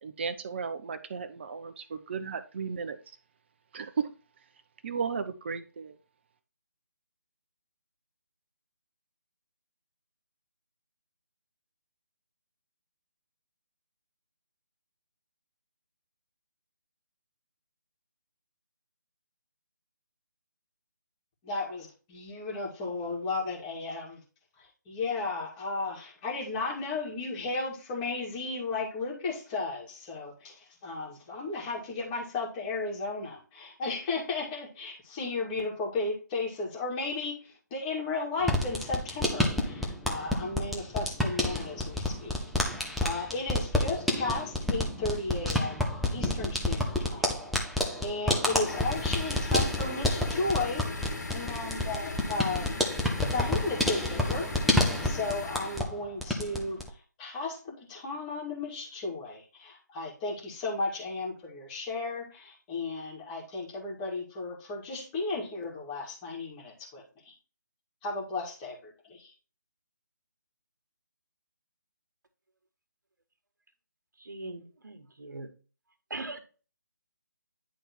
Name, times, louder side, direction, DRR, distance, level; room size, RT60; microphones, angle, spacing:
voice 1, 0.0-3.0 3.7-4.1 4.8-6.0, right 5 dB, 35° right, 10 dB, 0.8 m, -34 dB
voice 2, 21.4-24.2 24.6-42.4 43.0-47.3 48.0-52.7 53.3-67.3 68.0-69.3, left 3 dB, 20° left, -3 dB, 2.0 m, -34 dB
sound 1, 38.4-55.9 56.2-56.9, left 1 dB, ahead, 0.6 m, -29 dB
sound 2, 48.6-55.8, left 3 dB, 60° left, 1.9 m, -39 dB
voice 3, 74.2-75.5 76.1-76.4, right 2 dB, 70° right, 7 dB, 1.6 m, -40 dB
10.0 x 3.6 x 4.3 m, 0.35 s
figure-of-eight pair, 150°, 10 cm